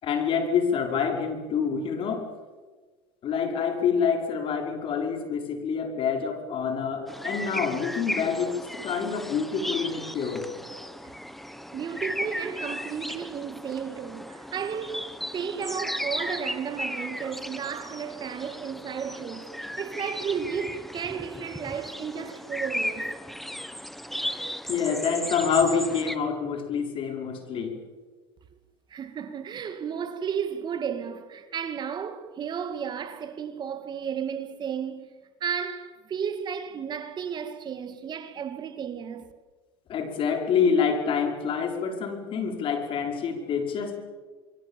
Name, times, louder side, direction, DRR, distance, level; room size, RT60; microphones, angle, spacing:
voice 1, 0.0-2.3 3.2-10.5 24.7-27.8 39.9-44.0, left 6 dB, 45° left, 5.1 m, -27 dB
Bluetit sparrows blackbird audio, 7.1-26.2, equal, ahead, 1.4 m, -35 dB
voice 2, 11.7-23.1 28.9-35.1 35.4-39.3, right 7 dB, 35° right, 2.3 m, -33 dB
26.0 x 23.5 x 7.3 m
hypercardioid pair, 95°, 12 cm